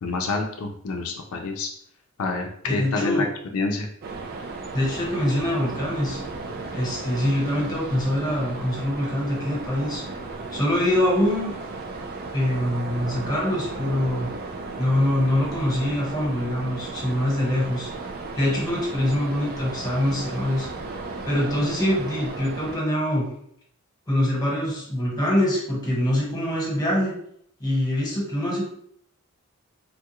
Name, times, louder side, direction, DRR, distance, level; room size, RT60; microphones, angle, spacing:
voice 1, 0.0-1.7 2.2-3.3 3.5-3.9, left 3 dB, 85° left, 3 dB, 0.4 m, -27 dB
voice 2, 2.7-3.3 4.7-6.2 6.7-10.0 10.5-11.5 12.3-14.3 14.8-18.1 18.3-20.7 21.2-23.3 24.1-27.1 27.6-28.7, left 1 dB, 20° left, -4 dB, 1.1 m, -24 dB
sound 1, 4.0-22.8, right 3 dB, 45° right, 0.4 m, -35 dB
3.4 x 2.3 x 2.9 m, 0.68 s
head